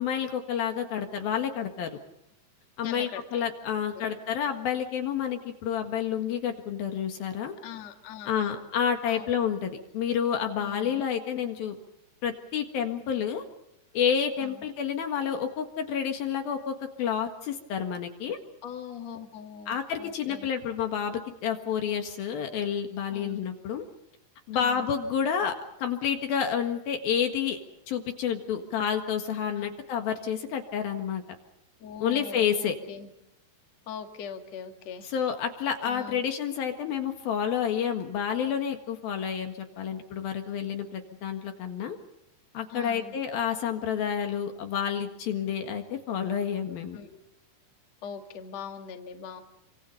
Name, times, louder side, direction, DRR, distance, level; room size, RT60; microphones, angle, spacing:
voice 1, 0.0-1.9 2.8-7.5 8.3-11.7 12.2-13.4 13.9-18.4 19.7-23.9 24.5-25.5 25.8-27.6 27.9-31.2 32.0-32.8 35.0-42.0 42.5-47.0, left 8 dB, 65° left, 5 dB, 3.4 m, -29 dB
voice 2, 2.8-3.4 3.9-4.1 7.6-8.7 9.1-9.3 10.6-11.0 14.4-14.6 18.6-20.5 23.1-23.4 24.5-24.9 29.6-29.8 31.8-33.1 33.9-35.1 35.8-36.2 42.7-43.2 46.9-47.2 48.0-49.4, left 7 dB, 45° left, 5 dB, 2.8 m, -41 dB
28.0 x 25.5 x 5.5 m, 0.82 s
omnidirectional pair, 4.7 m